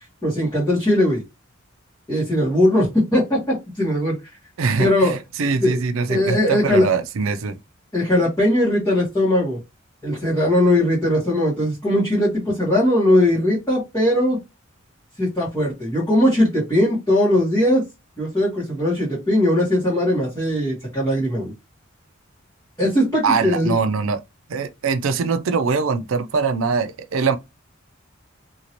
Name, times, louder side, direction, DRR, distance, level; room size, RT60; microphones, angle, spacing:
voice 1, 0.2-1.2 2.1-4.1 4.8-5.1 5.6-5.8 6.1-6.9 7.9-9.6 10.0-14.4 15.2-17.8 18.2-21.5 22.8-23.7, left 1 dB, 15° left, 1.5 m, -19 dB
voice 2, 4.6-7.6 23.2-24.2 24.5-27.4, right 5 dB, 70° right, 0.5 m, -22 dB
2.9 x 2.8 x 2.9 m
head